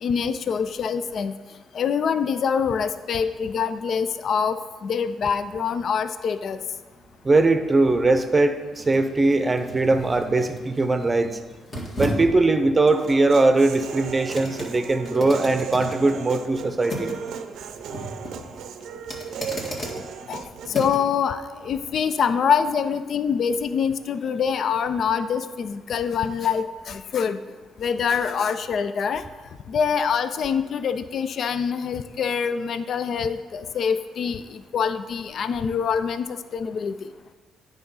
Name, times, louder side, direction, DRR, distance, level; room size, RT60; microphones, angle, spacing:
voice 1, 0.0-1.3 1.7-6.6 20.3-20.4 20.7-27.4 27.8-29.2 29.7-37.0, left 6 dB, 60° left, 11 dB, 0.4 m, -25 dB
sound 1, 6.5-21.2 21.6-21.7, equal, 35° left, 1.8 m, -37 dB
voice 2, 7.2-11.4 12.0-17.1, right 2 dB, 25° right, 8 dB, 0.7 m, -20 dB
Human voice, 12.9-20.9, right 7 dB, 80° right, 0.5 m, -36 dB
9.3 x 3.9 x 5.5 m, 1.3 s
cardioid pair, 90°, 0 cm